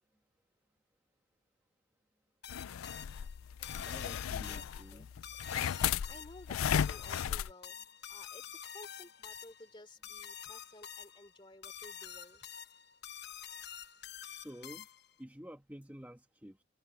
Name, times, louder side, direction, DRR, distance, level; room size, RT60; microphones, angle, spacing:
sound 1, 2.4-15.2, left 8 dB, 55° left, 1.0 m, -48 dB
sound 2, 2.5-7.5, left 8 dB, 85° left, 0.4 m, -35 dB
voice 1, 3.8-5.1 14.3-14.9 15.2-16.6, equal, 10° right, 1.5 m, -50 dB
voice 2, 4.5-5.0 5.3-5.4 5.7-7.7 8.1-12.5, left 2 dB, 25° left, 3.1 m, -55 dB
open air
head